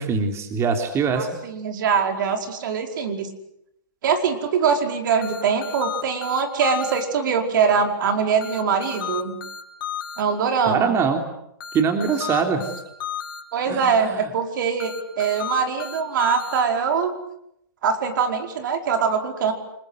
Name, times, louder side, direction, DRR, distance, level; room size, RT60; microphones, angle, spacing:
voice 1, 0.0-1.4 10.7-11.2 11.7-12.7 13.7-14.3, right 5 dB, 25° right, 4 dB, 3.4 m, -23 dB
voice 2, 1.1-3.3 4.0-9.4 10.2-10.9 13.5-17.1 17.8-19.5, right 6 dB, 65° right, 5 dB, 4.8 m, -23 dB
sound 1, 5.2-7.0 8.4-10.2 11.6-13.4 14.8-16.6, left 8 dB, 70° left, 4.1 m, -32 dB
29.5 x 21.5 x 8.1 m, 0.80 s
hypercardioid pair, 130°, 12 cm